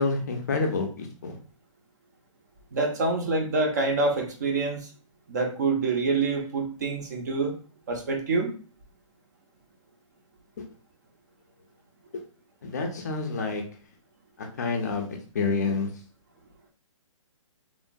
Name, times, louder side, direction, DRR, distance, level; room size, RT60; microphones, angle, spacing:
voice 1, 0.0-1.4 10.6-10.7 12.6-13.6 14.4-15.9, left 4 dB, 35° left, 3 dB, 0.4 m, -28 dB
voice 2, 2.7-4.9 5.3-7.6 7.9-8.5, right 3 dB, 35° right, 4 dB, 0.4 m, -26 dB
3.0 x 2.1 x 2.5 m, 0.41 s
hypercardioid pair, 165°, 17 cm